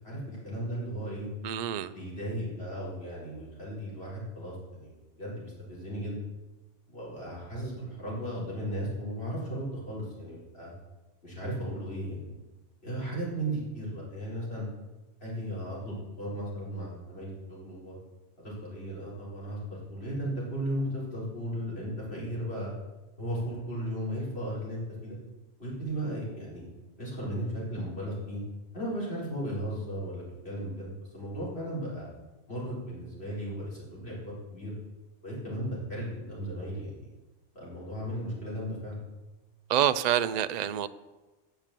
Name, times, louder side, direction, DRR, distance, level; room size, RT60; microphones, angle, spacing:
voice 1, 0.0-1.3 1.9-6.2 6.9-10.7 11.2-12.3 12.8-14.7 15.2-18.0 18.4-22.7 23.2-25.2 25.6-26.6 27.0-28.4 28.7-32.1 32.5-34.7 35.2-37.1 37.5-39.0, right 1 dB, 55° left, -7 dB, 4.5 m, -36 dB
voice 2, 1.4-1.9 39.7-40.9, right 10 dB, 80° right, 12 dB, 0.3 m, -27 dB
9.1 x 6.8 x 7.4 m, 1.1 s
omnidirectional pair, 1.2 m